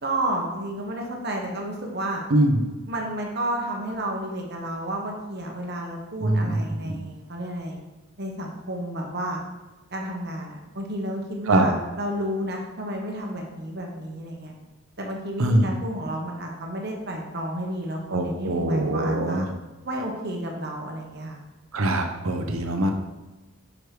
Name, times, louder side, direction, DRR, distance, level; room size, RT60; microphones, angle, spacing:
voice 1, 0.0-2.2 2.9-7.8 8.2-9.4 9.9-14.5 15.0-19.5 19.8-21.4, right 1 dB, 50° right, 0 dB, 1.1 m, -31 dB
voice 2, 6.2-7.0 11.5-11.7 15.4-15.7 18.1-19.4 21.7-22.9, right 1 dB, 80° right, 5 dB, 0.8 m, -23 dB
6.3 x 4.7 x 4.8 m, 1.2 s
head